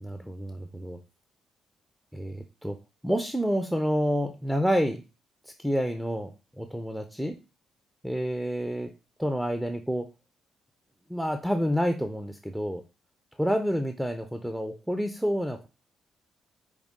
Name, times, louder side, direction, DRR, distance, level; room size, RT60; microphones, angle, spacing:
voice 1, 0.0-1.0 2.1-2.8 3.0-5.0 5.6-6.3 6.6-7.3 8.0-8.9 9.2-10.0 11.1-12.8 13.4-15.7, equal, ahead, 5 dB, 0.4 m, -28 dB
4.9 x 2.3 x 3.6 m, 0.30 s
cardioid pair, 90°, 0 cm